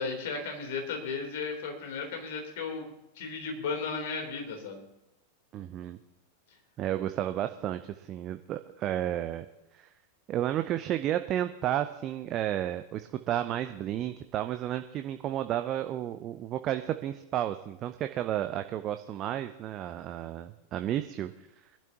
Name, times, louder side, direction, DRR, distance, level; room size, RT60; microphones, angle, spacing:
voice 1, 0.0-2.9 3.2-4.8, left 4 dB, 55° left, 3 dB, 3.5 m, -35 dB
voice 2, 5.5-6.0 6.8-9.5 9.7-9.9 10.3-21.3, right 12 dB, 35° right, 9 dB, 0.6 m, -32 dB
23.5 x 12.0 x 2.9 m, 0.91 s
figure-of-eight pair, 90°, 0 cm